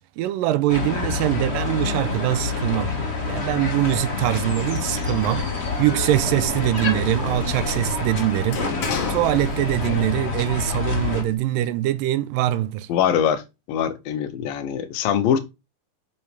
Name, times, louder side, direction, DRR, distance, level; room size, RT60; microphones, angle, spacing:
voice 1, 0.0-3.0 3.2-5.5 5.8-8.6 9.1-12.9, right 14 dB, 80° right, 2.2 m, -23 dB
sound 1, 0.7-11.2, left 4 dB, 30° left, 1.2 m, -27 dB
Walk footsteps, 3.4-11.1, right 3 dB, 50° right, 1.6 m, -39 dB
Sliding door, 5.3-10.1 10.4-11.4, left 6 dB, 55° left, 1.8 m, -34 dB
voice 2, 12.9-13.4 13.7-15.4, left 9 dB, 85° left, 2.7 m, -22 dB
8.0 x 6.9 x 3.4 m
omnidirectional pair, 4.1 m